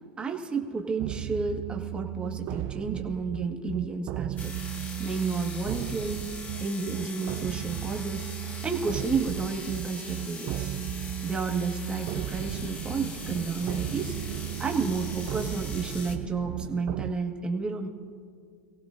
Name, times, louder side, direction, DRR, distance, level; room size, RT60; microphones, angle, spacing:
voice 1, 0.2-4.5 5.0-6.3 6.6-10.7 11.2-14.2 14.6-17.9, right 4 dB, 15° right, 2 dB, 1.6 m, -31 dB
sound 1, 1.0-17.1, right 14 dB, 45° right, 0.4 m, -35 dB
sound 2, 4.4-16.2, left 3 dB, 25° left, 1.7 m, -42 dB
24.0 x 16.5 x 2.6 m, 2.2 s
supercardioid pair, 120°, 6 cm